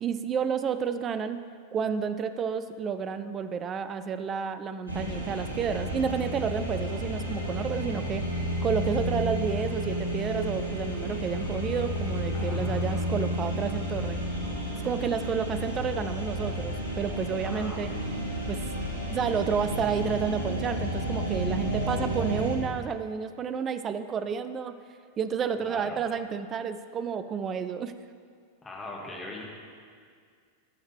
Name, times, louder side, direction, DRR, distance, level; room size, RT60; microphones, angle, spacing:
voice 1, 0.0-1.4 1.7-8.2 8.6-14.2 14.8-17.9 18.5-18.6 19.1-24.8 25.2-27.9, right 6 dB, 25° right, 10 dB, 0.4 m, -30 dB
sound 1, 4.9-22.6, equal, 80° right, 1.7 m, -31 dB
voice 2, 12.3-13.1 17.4-18.1 25.6-26.0 28.6-29.4, left 2 dB, 15° left, -3 dB, 1.9 m, -41 dB
15.0 x 6.5 x 3.3 m, 2.1 s
figure-of-eight pair, 90°, 0 cm